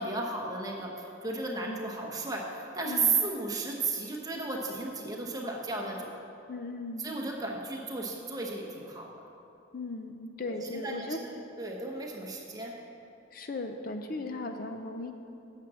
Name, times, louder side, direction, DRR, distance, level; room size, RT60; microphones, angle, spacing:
voice 1, 0.0-6.1 7.0-9.1 10.4-12.8 14.1-14.2, right 3 dB, 20° right, -1 dB, 1.1 m, -34 dB
voice 2, 2.8-3.2 6.5-7.1 9.7-11.2 13.3-15.1, left 2 dB, 45° left, 6 dB, 0.5 m, -37 dB
9.1 x 7.5 x 6.2 m, 2.8 s
head